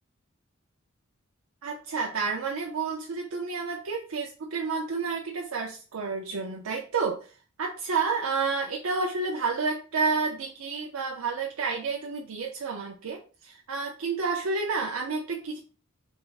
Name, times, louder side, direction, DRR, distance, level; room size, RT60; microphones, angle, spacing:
voice 1, 1.6-7.3 7.6-15.6, right 4 dB, 85° right, 0 dB, 0.6 m, -30 dB
3.5 x 2.1 x 4.0 m, 0.36 s
head